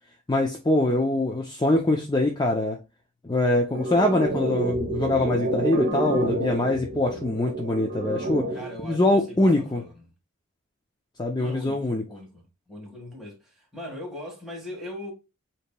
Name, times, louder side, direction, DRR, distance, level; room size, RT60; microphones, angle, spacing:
voice 1, 0.3-2.8 3.2-8.4 8.8-9.8 11.2-12.0, left 2 dB, 20° left, 0.5 m, -23 dB
sound 1, 3.7-8.7, right 2 dB, 55° right, 0.9 m, -28 dB
voice 2, 8.5-10.0 11.3-15.1, left 1 dB, ahead, 1.6 m, -40 dB
8.2 x 2.9 x 2.2 m
head